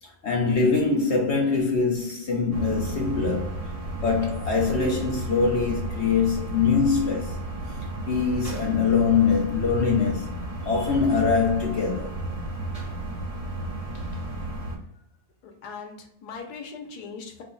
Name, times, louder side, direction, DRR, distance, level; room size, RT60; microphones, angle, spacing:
voice 1, 0.0-7.4 8.1-10.3 10.6-12.2, left 5 dB, 55° left, 0.9 m, -23 dB
sound 1, 2.5-14.8, right 2 dB, 30° right, 0.8 m, -33 dB
voice 2, 13.9-14.3 15.4-17.4, left 5 dB, 85° left, 1.4 m, -40 dB
4.8 x 2.3 x 3.9 m
omnidirectional pair, 1.7 m